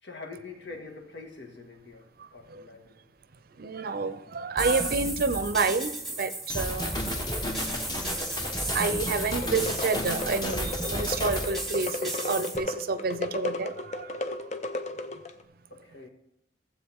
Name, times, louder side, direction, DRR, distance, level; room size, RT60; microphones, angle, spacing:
voice 1, 0.0-3.0 4.3-4.4 15.7-16.1, left 3 dB, 70° left, 3 dB, 1.8 m, -45 dB
voice 2, 2.2-2.6 3.6-7.0 8.7-14.3, right 4 dB, 55° right, 13 dB, 0.6 m, -29 dB
sound 1, 4.6-12.6, right 1 dB, ahead, 1.5 m, -34 dB
sound 2, 6.5-11.5, left 1 dB, 25° left, 1.2 m, -34 dB
sound 3, 9.4-15.4, left 1 dB, 40° left, 0.7 m, -35 dB
15.5 x 7.7 x 3.6 m, 0.81 s
head